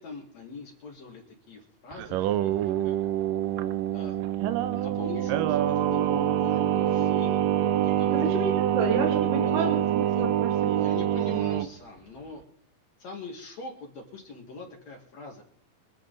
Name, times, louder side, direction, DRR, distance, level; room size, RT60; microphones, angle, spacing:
voice 1, 0.0-2.9 3.9-4.2 4.7-7.4 7.7-8.3 9.5-9.8 10.1-10.2 10.7-12.4 13.0-15.4, left 3 dB, 60° left, 1 dB, 2.8 m, -42 dB
Singing, 1.9-11.7, right 11 dB, 85° right, 2.4 m, -25 dB
voice 2, 8.1-10.9, right 4 dB, 50° right, 1 dB, 3.2 m, -30 dB
24.5 x 8.3 x 3.9 m, 0.68 s
omnidirectional pair, 3.8 m